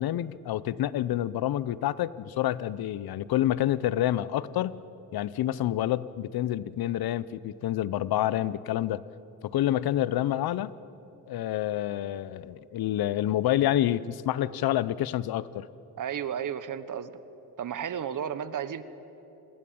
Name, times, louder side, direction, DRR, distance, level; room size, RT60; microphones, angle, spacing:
voice 1, 0.0-4.8 5.1-9.0 9.4-10.7 11.3-15.7, left 13 dB, 70° left, 18 dB, 0.8 m, -28 dB
voice 2, 16.0-17.1 17.6-18.8, right 8 dB, 55° right, 13 dB, 1.3 m, -33 dB
27.0 x 20.0 x 8.7 m, 2.9 s
cardioid pair, 105°, 38 cm